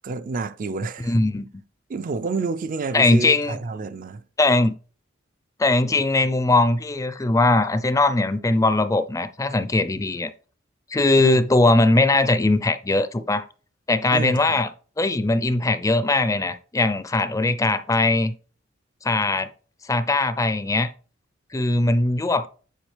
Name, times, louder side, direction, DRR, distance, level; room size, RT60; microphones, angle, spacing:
voice 1, 0.0-1.1 1.9-4.2 5.9-6.0 11.2-11.4 14.1-14.6, right 3 dB, 45° right, 0.4 m, -29 dB
voice 2, 1.0-1.5 2.9-3.6 4.4-4.7 5.6-10.3 10.9-13.4 13.9-14.7 15.0-18.3 19.0-19.5 19.9-20.9 21.5-22.5, left 2 dB, 15° left, 0.4 m, -20 dB
9.1 x 5.0 x 3.3 m
head